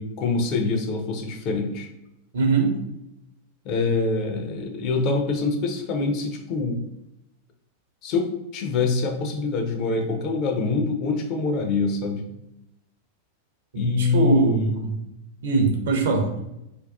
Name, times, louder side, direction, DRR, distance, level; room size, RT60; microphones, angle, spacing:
voice 1, 0.0-1.9 3.6-6.8 8.0-12.3 13.7-14.7, left 4 dB, 40° left, 3 dB, 0.4 m, -25 dB
voice 2, 2.3-2.7 13.7-14.9 15.4-16.3, right 3 dB, 60° right, 2 dB, 0.5 m, -21 dB
2.5 x 2.2 x 2.3 m, 0.87 s
figure-of-eight pair, 90°, 0 cm